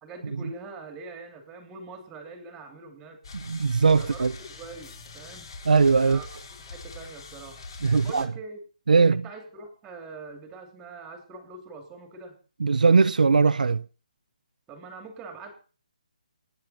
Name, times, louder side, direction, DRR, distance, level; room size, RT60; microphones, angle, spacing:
voice 1, 0.0-3.2 3.9-5.5 6.0-6.4 6.7-7.6 7.9-8.6 9.0-12.4 14.7-15.5, right 3 dB, 10° right, 2.7 m, -43 dB
sound 1, 3.2-8.2, left 3 dB, 40° left, 4.5 m, -43 dB
voice 2, 3.3-4.3 5.7-6.2 7.8-8.3 8.9-9.2 12.6-13.8, right 4 dB, 75° right, 0.8 m, -20 dB
26.5 x 9.7 x 4.3 m
hypercardioid pair, 175°, 4 cm